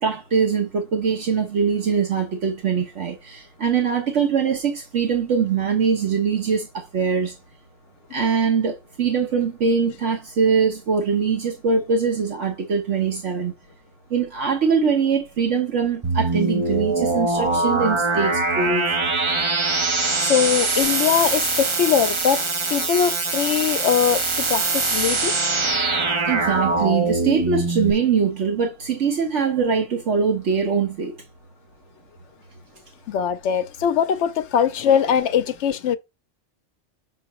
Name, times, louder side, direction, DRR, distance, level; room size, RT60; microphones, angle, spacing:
voice 1, 0.0-7.4 8.1-13.5 14.1-18.9 26.3-31.1, right 6 dB, 70° right, 1.3 m, -22 dB
sound 1, 16.0-27.9, right 3 dB, 30° right, 0.6 m, -23 dB
voice 2, 20.2-22.4 22.7-25.4 33.1-36.0, left 8 dB, 70° left, 0.8 m, -21 dB
6.1 x 5.5 x 3.0 m
omnidirectional pair, 1.3 m